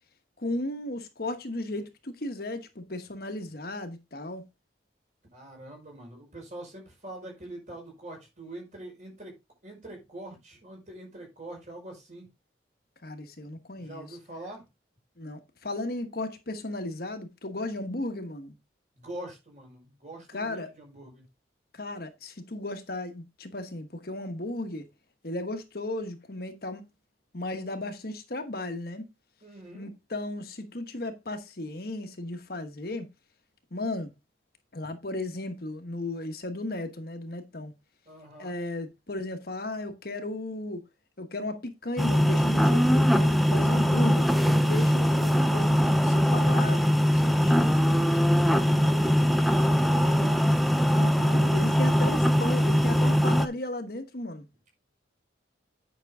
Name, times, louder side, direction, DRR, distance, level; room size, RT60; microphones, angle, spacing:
voice 1, 0.4-4.4 13.0-14.1 15.2-18.5 20.3-20.7 21.7-24.9 25.2-26.8 27.3-29.1 29.7-33.1 33.7-34.1 34.7-37.7 38.4-40.8 41.2-47.9 50.0-50.3 50.9-54.5, left 2 dB, 50° left, 1.2 m, -35 dB
voice 2, 5.3-9.3 9.6-12.3 13.7-14.7 19.0-21.2 29.4-29.9 38.1-38.5 48.2-50.5, right 1 dB, 40° right, 5.2 m, -44 dB
sound 1, 42.0-53.5, equal, ahead, 0.5 m, -22 dB
9.4 x 6.1 x 3.6 m
head